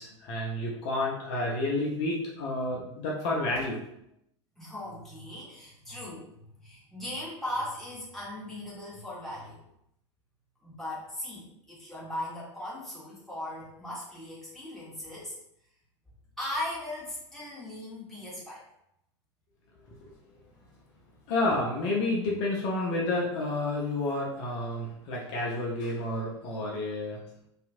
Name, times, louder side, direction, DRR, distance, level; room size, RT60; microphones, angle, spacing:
voice 1, 0.0-3.8 19.9-20.0 21.3-27.2, left 2 dB, 50° left, -3 dB, 0.6 m, -30 dB
voice 2, 4.6-6.3 6.6-9.6 10.6-15.3 16.4-18.6, left 1 dB, ahead, -7 dB, 1.2 m, -38 dB
2.8 x 2.4 x 2.5 m, 0.77 s
hypercardioid pair, 90°, 15 cm